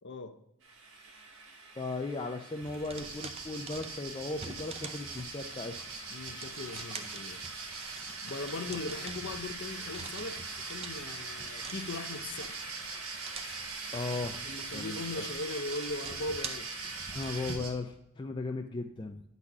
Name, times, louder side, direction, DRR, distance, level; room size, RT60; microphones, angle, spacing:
voice 1, 0.0-0.4 6.1-7.4 8.2-12.5 14.4-16.7, left 2 dB, 50° left, 0.7 m, -39 dB
sound 1, 0.6-17.5, right 3 dB, 55° right, 1.8 m, -44 dB
voice 2, 1.8-5.8 13.9-14.4 14.7-15.2 17.1-19.2, left 3 dB, 20° left, 0.4 m, -37 dB
sound 2, 2.6-17.6, right 4 dB, 25° right, 0.6 m, -47 dB
sound 3, 2.9-17.7, right 4 dB, 80° right, 1.7 m, -44 dB
9.7 x 4.1 x 5.9 m
head